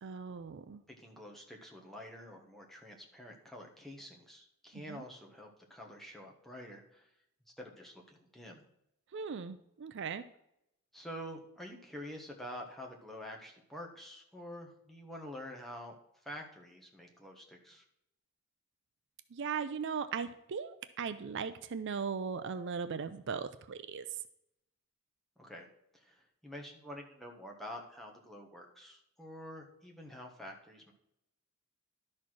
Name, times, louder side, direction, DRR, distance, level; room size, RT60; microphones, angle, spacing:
voice 1, 0.0-0.8 4.7-5.0 9.1-10.2 19.3-24.1, right 6 dB, 55° right, 11 dB, 0.4 m, -38 dB
voice 2, 1.0-7.1 7.6-8.6 10.9-16.0 16.2-17.8 25.4-25.7 25.9-30.9, equal, ahead, 0 dB, 1.3 m, -48 dB
11.5 x 4.3 x 6.2 m, 0.80 s
head